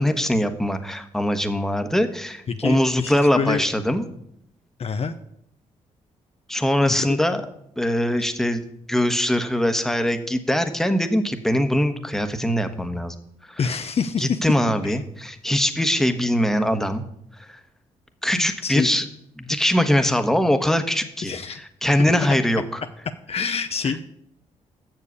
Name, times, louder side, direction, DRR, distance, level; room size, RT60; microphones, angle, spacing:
voice 1, 0.0-4.0 6.5-7.4 7.8-8.6 8.9-13.1 13.5-13.7 14.2-17.0 17.4-17.6 18.2-19.0 19.4-22.8 23.8-23.9, equal, 5° left, 7 dB, 1.2 m, -22 dB
voice 2, 2.5-3.6 4.8-5.1 6.8-7.2 13.6-14.4 14.8-15.0 18.3-18.9 21.2-21.6 23.3-24.0, left 6 dB, 50° left, 8 dB, 0.6 m, -26 dB
7.6 x 6.7 x 8.2 m, 0.73 s
cardioid pair, 65°, 13 cm